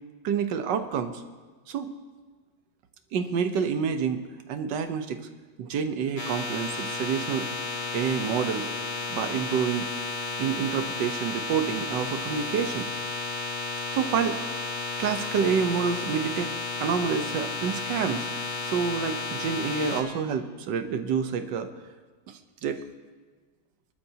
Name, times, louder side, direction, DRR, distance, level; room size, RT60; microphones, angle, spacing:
voice 1, 0.2-1.2 1.7-1.9 3.1-4.2 4.5-5.2 5.6-7.5 7.9-8.7 9.1-9.9 10.4-12.9 13.9-14.4 15.0-16.5 16.8-18.3 18.6-21.7 22.3-22.8, right 6 dB, 75° right, 8 dB, 1.6 m, -28 dB
sound 1, 6.1-20.0, left 3 dB, 75° left, 2.5 m, -33 dB
24.0 x 12.0 x 2.8 m, 1.4 s
omnidirectional pair, 1.9 m